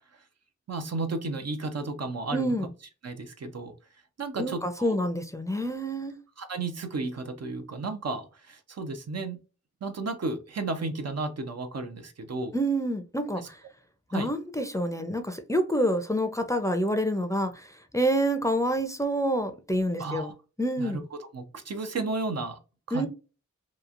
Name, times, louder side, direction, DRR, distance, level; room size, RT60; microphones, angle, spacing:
voice 1, 0.7-2.5 3.0-3.7 4.2-5.0 6.4-9.4 9.8-12.5 13.4-13.5 14.1-14.3 20.0-20.3 20.8-22.6 22.9-23.1, right 3 dB, 60° right, 0.6 m, -33 dB
voice 2, 2.3-2.7 4.4-6.1 12.5-13.6 14.1-20.3 20.6-21.0 22.9-23.1, equal, 10° left, 0.5 m, -27 dB
2.9 x 2.4 x 2.4 m
cardioid pair, 45°, 30 cm